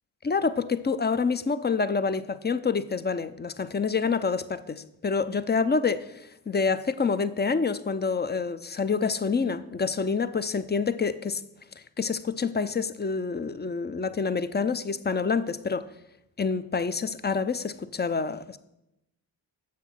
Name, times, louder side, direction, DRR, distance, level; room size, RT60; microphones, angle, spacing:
voice 1, 0.2-6.1 6.5-11.4 12.0-15.9 16.4-18.6, left 5 dB, 20° left, 12 dB, 0.6 m, -27 dB
7.3 x 5.9 x 6.0 m, 0.87 s
supercardioid pair, 45°, 46 cm